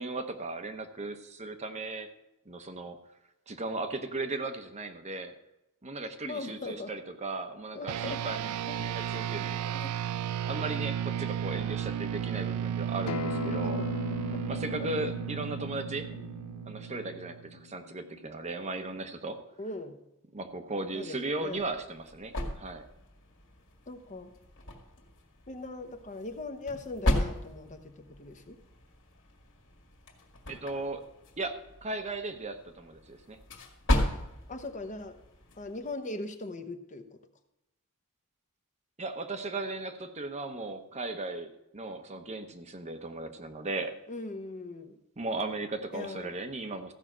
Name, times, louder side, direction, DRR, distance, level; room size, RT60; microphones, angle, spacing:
voice 1, 0.0-2.1 2.5-3.0 3.5-5.3 5.8-8.5 8.8-9.7 10.4-13.8 14.5-16.1 16.7-19.4 20.3-22.9 30.5-31.0 31.4-33.4 39.0-43.9 45.2-46.9, right 2 dB, 30° right, 7 dB, 0.9 m, -36 dB
voice 2, 6.2-6.9 7.7-8.2 8.7-8.8 9.7-9.9 13.6-14.0 14.3-15.1 16.1-16.3 19.6-20.0 20.9-21.6 23.9-24.3 25.5-28.6 34.5-35.2 35.6-37.2 44.1-45.0 45.9-46.3, left 2 dB, 35° left, 7 dB, 0.9 m, -40 dB
sound 1, 7.9-17.6, right 9 dB, 80° right, 0.3 m, -34 dB
Acoustic guitar, 13.1-18.3, left 5 dB, 85° left, 0.5 m, -39 dB
sound 2, 21.4-35.9, left 1 dB, 60° left, 2.0 m, -36 dB
14.5 x 5.7 x 6.1 m, 0.91 s
head